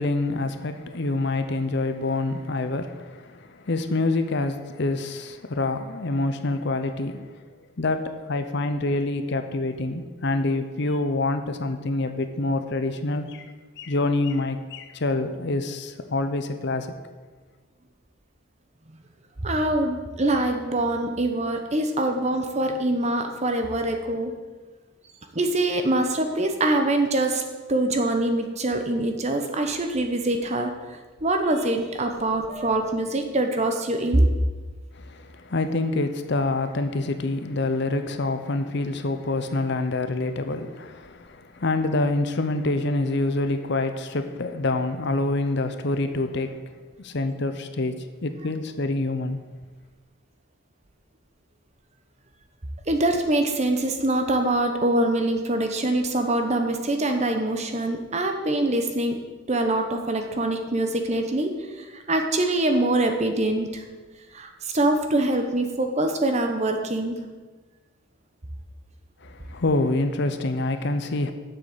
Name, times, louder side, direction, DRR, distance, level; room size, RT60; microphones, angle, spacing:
voice 1, 0.0-7.4 7.8-16.9 34.9-46.6 47.0-48.0 48.2-49.4 69.2-71.3, left 2 dB, 55° left, 0.7 m, -26 dB
voice 2, 19.4-24.3 25.3-27.4 27.7-34.3 52.9-59.2 59.5-61.5 61.8-63.8 64.3-67.2, right 1 dB, 30° right, 0.9 m, -24 dB
7.9 x 6.5 x 7.3 m
head